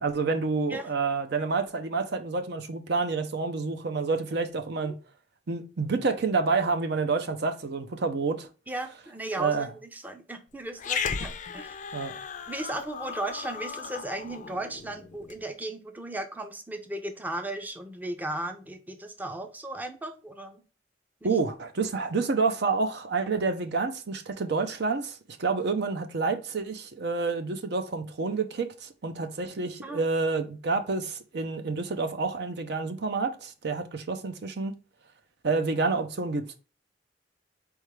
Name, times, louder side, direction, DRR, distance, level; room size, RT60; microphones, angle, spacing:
voice 1, 0.0-4.9 5.5-8.5 9.3-9.7 11.9-12.1 21.2-34.7 35.4-36.6, right 4 dB, 65° right, 0.6 m, -28 dB
voice 2, 8.7-11.8 12.5-20.6 21.2-21.3 29.8-30.0, right 1 dB, 10° right, 0.5 m, -36 dB
Growling, 10.8-15.4, left 6 dB, 45° left, 0.5 m, -36 dB
4.4 x 3.5 x 3.1 m
head